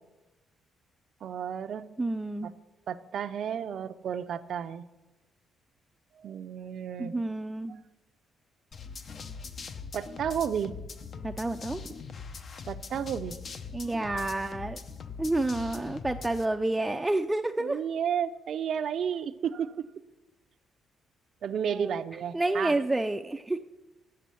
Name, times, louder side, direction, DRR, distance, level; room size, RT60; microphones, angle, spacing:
voice 1, 1.2-1.9 2.4-2.5 2.9-4.8 6.2-7.1 9.9-10.7 12.7-13.4 14.0-14.1 17.6-19.9 21.4-22.8, right 8 dB, 65° right, 10 dB, 0.5 m, -32 dB
voice 2, 2.0-2.5 7.0-7.8 11.2-11.8 13.7-14.8 15.2-17.8 21.7-22.0 22.3-23.6, right 2 dB, 15° right, 5 dB, 0.4 m, -29 dB
sound 1, 8.7-16.5, left 5 dB, 50° left, 0.8 m, -42 dB
7.8 x 7.5 x 8.2 m, 1.0 s
cardioid pair, 90°, 0 cm